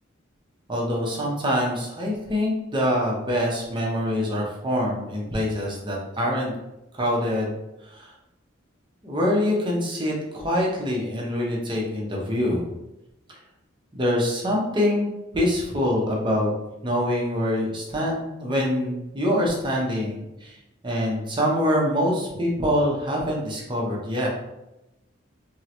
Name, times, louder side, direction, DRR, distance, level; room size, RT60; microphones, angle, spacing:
voice 1, 0.7-6.5 6.9-7.5 7.8-8.1 9.0-12.6 13.3-13.4 13.9-16.5 16.8-20.6 20.8-24.3, equal, 25° right, -2 dB, 0.6 m, -25 dB
3.6 x 2.0 x 2.9 m, 0.93 s
head